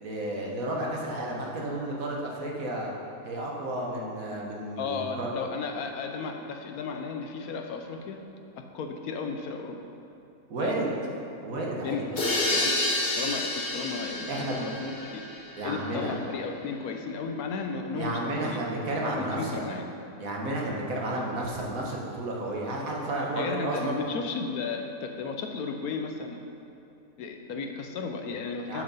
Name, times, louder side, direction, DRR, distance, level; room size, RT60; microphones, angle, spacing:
voice 1, 0.0-2.9 3.2-5.3 10.5-10.9 11.4-12.1 14.3-14.7 15.6-16.2 17.9-19.7 20.2-24.0 28.7-28.8, right 1 dB, 60° right, -2 dB, 1.6 m, -32 dB
voice 2, 4.8-8.2 8.7-9.8 10.6-10.8 11.8-14.3 14.6-15.2 15.6-18.6 19.1-19.9 23.3-26.4 27.2-28.8, left 5 dB, 70° left, 4 dB, 1.1 m, -34 dB
sound 1, 12.2-15.9, left 2 dB, 45° left, 1.4 m, -29 dB
7.8 x 5.9 x 5.5 m, 2.7 s
omnidirectional pair, 1.7 m